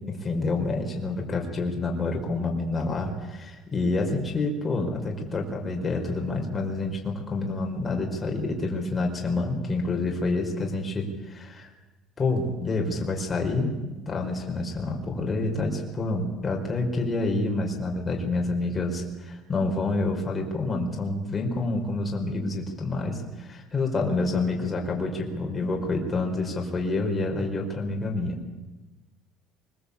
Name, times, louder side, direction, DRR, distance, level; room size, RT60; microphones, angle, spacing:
voice 1, 0.1-11.7 12.2-28.4, left 2 dB, 20° left, 1 dB, 4.9 m, -28 dB
24.0 x 21.5 x 8.5 m, 1.1 s
cardioid pair, 145°, 0 cm